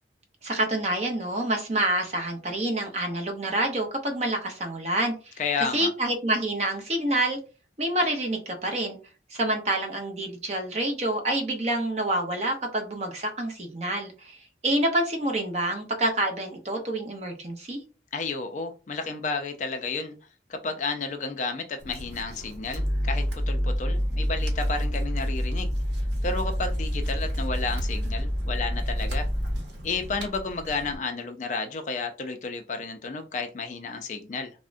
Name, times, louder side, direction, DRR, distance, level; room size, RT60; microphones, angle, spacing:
voice 1, 0.4-5.4 5.7-7.4 7.8-9.0 9.3-17.8, right 1 dB, 40° right, 0.6 m, -27 dB
voice 2, 5.4-5.9 18.1-20.1 20.5-25.7 26.2-29.3 29.8-34.5, left 4 dB, 45° left, 0.3 m, -32 dB
sound 1, 21.8-31.0, equal, 80° right, 0.9 m, -41 dB
sound 2, 22.7-29.6, equal, 20° right, 1.6 m, -27 dB
3.4 x 2.1 x 2.5 m
head